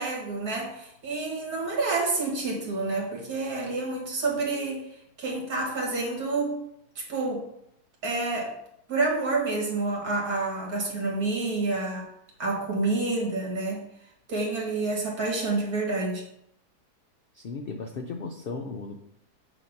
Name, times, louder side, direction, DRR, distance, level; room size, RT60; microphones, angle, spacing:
voice 1, 0.0-4.9 5.2-6.6 7.0-7.4 8.0-8.5 8.9-12.1 12.4-13.8 14.3-16.2, right 3 dB, 70° right, -1 dB, 2.1 m, -28 dB
voice 2, 17.3-19.0, left 4 dB, 90° left, 4 dB, 0.5 m, -36 dB
8.0 x 2.9 x 5.2 m, 0.76 s
omnidirectional pair, 1.7 m